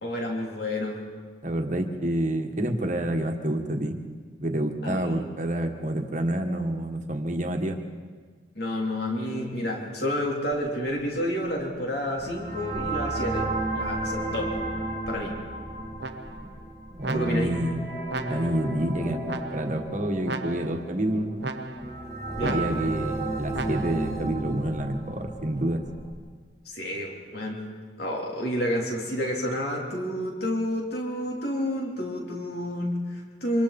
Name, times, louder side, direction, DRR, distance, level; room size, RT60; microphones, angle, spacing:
voice 1, 0.0-1.0 4.8-5.3 8.6-13.5 13.7-14.5 15.1-15.3 17.1-17.5 22.4-22.6 26.7-27.6 28.0-33.6, left 1 dB, 55° left, -1 dB, 3.7 m, -29 dB
voice 2, 1.4-4.0 4.4-7.8 16.9-18.0 18.3-21.5 22.4-25.8, right 1 dB, 40° right, 4 dB, 1.7 m, -28 dB
sound 1, 10.5-26.1, right 2 dB, 20° left, 3.4 m, -34 dB
sound 2, 16.0-16.6 17.0-17.7 18.1-18.7 19.3-19.9 20.2-20.9 21.4-22.0 22.4-23.0 23.5-24.1, right 3 dB, 65° right, 1.0 m, -36 dB
26.5 x 25.5 x 4.3 m, 1.5 s
head